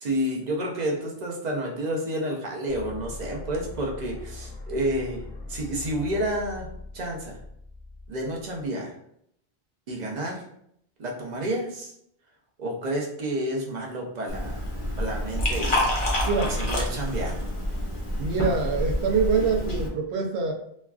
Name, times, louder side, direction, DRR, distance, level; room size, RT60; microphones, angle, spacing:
voice 1, 0.0-6.7 6.9-7.4 8.1-8.9 9.9-10.4 11.0-11.9 12.6-14.6 15.0-15.8 16.4-17.5, right 1 dB, 50° right, -1 dB, 0.7 m, -30 dB
sound 1, 2.7-8.7, left 2 dB, 70° left, 0.8 m, -41 dB
Liquid, 14.3-19.9, left 1 dB, 40° left, 0.6 m, -28 dB
voice 2, 16.2-16.6 18.2-20.5, right 5 dB, 90° right, 2 dB, 0.9 m, -25 dB
3.1 x 2.4 x 2.3 m, 0.71 s
omnidirectional pair, 1.1 m